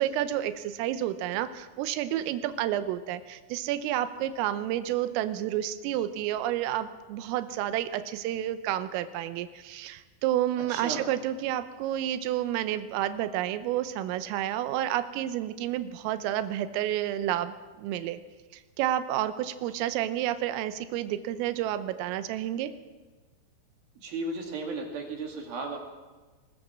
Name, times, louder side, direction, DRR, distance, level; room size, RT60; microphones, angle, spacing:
voice 1, 0.0-18.2 18.5-22.7, right 12 dB, 90° right, 11 dB, 3.5 m, -30 dB
voice 2, 10.6-11.1 24.0-25.8, right 3 dB, 55° right, 2 dB, 3.8 m, -35 dB
20.5 x 18.5 x 7.4 m, 1.3 s
omnidirectional pair, 5.8 m